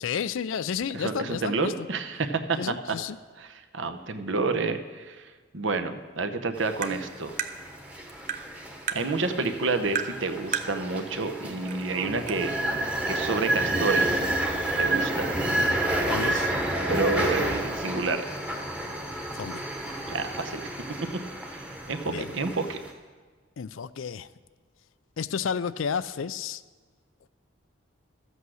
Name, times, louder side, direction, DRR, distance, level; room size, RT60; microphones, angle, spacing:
voice 1, 0.0-1.7 2.6-3.2 16.1-16.5 19.4-19.6 22.1-22.3 23.6-24.3 25.2-26.6, left 6 dB, 75° left, 16 dB, 0.4 m, -31 dB
voice 2, 0.9-3.0 3.4-5.2 5.5-7.3 8.9-14.2 14.8-15.3 16.2-16.5 16.9-18.2 20.1-20.6 21.0-21.1 21.5-22.8, right 3 dB, 65° right, 8 dB, 0.9 m, -29 dB
sound 1, 6.6-22.9, right 1 dB, 5° right, 1.1 m, -30 dB
Tap, 6.8-7.0 7.4-7.5 8.3-8.4 8.9-9.0 10.0-10.1 10.5-10.7 11.7-11.8 12.3-12.4, right 8 dB, 40° right, 0.7 m, -30 dB
13.0 x 8.3 x 6.3 m, 1.5 s
head